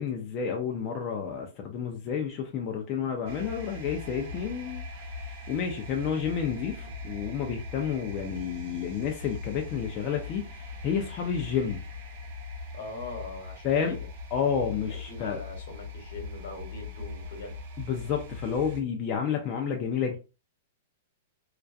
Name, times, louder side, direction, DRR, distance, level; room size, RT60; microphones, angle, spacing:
voice 1, 0.0-5.1 5.5-11.8 13.6-13.9 14.3-15.4 17.8-20.2, left 7 dB, 30° left, 0.4 m, -30 dB
sound 1, 3.2-18.8, left 3 dB, 55° right, 0.6 m, -40 dB
voice 2, 12.7-14.1 14.9-17.6, left 3 dB, 70° left, 1.0 m, -42 dB
2.3 x 2.1 x 2.5 m
hypercardioid pair, 155°, 0 cm